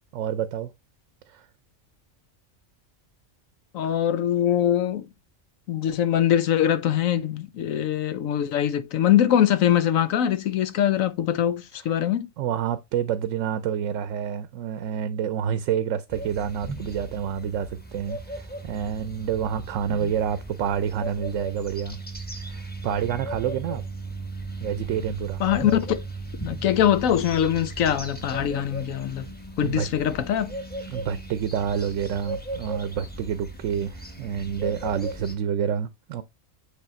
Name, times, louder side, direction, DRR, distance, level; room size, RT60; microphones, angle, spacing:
voice 1, 0.1-0.7 1.3-1.4 12.4-22.0 22.5-23.8 24.6-25.4 29.6-29.9 30.9-36.2, right 8 dB, 75° right, 0.9 m, -28 dB
voice 2, 3.7-5.1 5.7-12.3 20.0-20.1 25.4-25.8 26.4-29.3 29.6-30.5, left 10 dB, 85° left, 1.1 m, -23 dB
sound 1, 16.1-35.3, right 2 dB, 10° left, 0.9 m, -37 dB
8.2 x 3.4 x 4.2 m
omnidirectional pair, 1.4 m